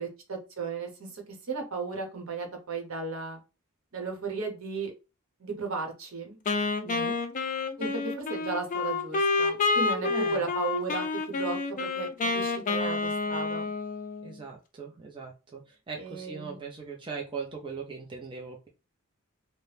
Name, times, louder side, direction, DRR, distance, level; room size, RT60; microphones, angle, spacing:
voice 1, 0.0-3.4 3.9-4.9 5.4-6.4 7.8-13.7 16.0-16.6, right 4 dB, 70° right, 2 dB, 0.9 m, -35 dB
Wind instrument woodwind instrument, 6.5-14.4, left 3 dB, 35° left, 0.4 m, -29 dB
voice 2, 6.8-7.2 10.1-10.5 14.2-18.7, right 5 dB, 25° right, 0 dB, 0.5 m, -40 dB
2.7 x 2.1 x 3.3 m, 0.30 s
head